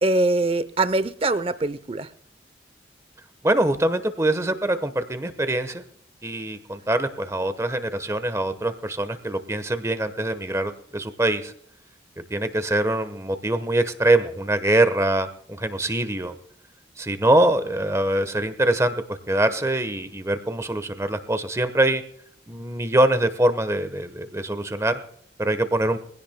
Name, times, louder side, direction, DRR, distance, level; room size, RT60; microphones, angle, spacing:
voice 1, 0.0-2.1, right 2 dB, 30° right, 15 dB, 0.7 m, -23 dB
voice 2, 3.4-5.8 6.2-11.5 12.3-16.3 17.0-18.9 19.3-22.0 22.5-25.0 25.4-26.0, right 1 dB, 15° right, 10 dB, 1.1 m, -23 dB
23.0 x 16.0 x 2.2 m, 0.63 s
head